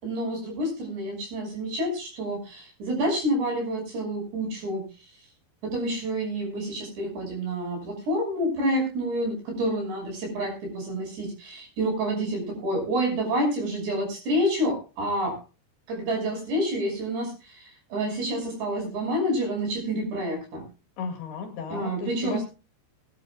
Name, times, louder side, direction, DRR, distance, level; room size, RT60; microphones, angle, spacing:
voice 1, 0.0-4.8 5.6-15.4 15.9-20.6 21.7-22.4, right 1 dB, 65° right, 1 dB, 8.0 m, -28 dB
voice 2, 21.0-22.4, left 5 dB, 65° left, 2 dB, 3.6 m, -34 dB
21.5 x 11.0 x 2.4 m, 0.32 s
omnidirectional pair, 5.2 m